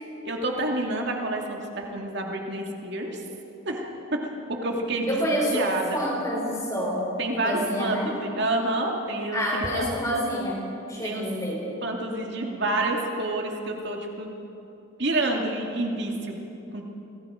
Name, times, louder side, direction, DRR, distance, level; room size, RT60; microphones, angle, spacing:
voice 1, 0.2-3.2 3.7-4.2 4.5-5.2 5.5-6.0 7.2-9.9 11.0-11.2 11.8-14.3 15.0-16.4 16.7-16.9, right 2 dB, 55° right, 1 dB, 2.5 m, -28 dB
voice 2, 5.1-7.1 7.3-8.1 9.3-11.7, equal, 15° left, -4 dB, 3.8 m, -28 dB
27.0 x 19.0 x 5.1 m, 3.0 s
head